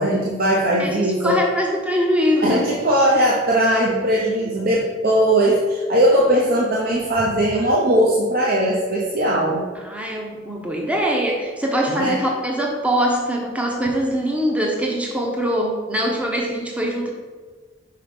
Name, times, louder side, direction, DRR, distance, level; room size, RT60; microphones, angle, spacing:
voice 1, 0.0-1.4 2.4-9.6 11.9-12.2, right 1 dB, 50° right, -3 dB, 0.8 m, -19 dB
voice 2, 0.7-2.6 9.7-17.1, equal, 5° right, -1 dB, 0.7 m, -23 dB
5.8 x 4.4 x 5.1 m, 1.5 s
head